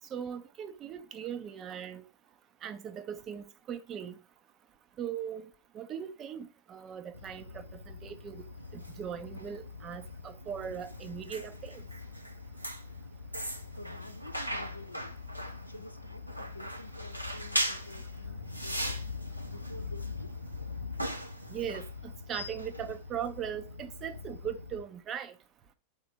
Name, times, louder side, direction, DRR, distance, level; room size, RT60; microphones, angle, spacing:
voice 1, 0.1-2.0 2.6-4.2 5.0-5.5 5.7-8.5 8.7-11.8 21.5-25.4, right 8 dB, 30° right, 0.5 m, -39 dB
sound 1, 7.1-24.8, left 1 dB, 90° right, 0.8 m, -39 dB
voice 2, 13.7-15.2 15.6-19.1 19.5-20.3, left 1 dB, 85° left, 0.6 m, -50 dB
3.7 x 3.4 x 4.0 m
figure-of-eight pair, 90°, 0 cm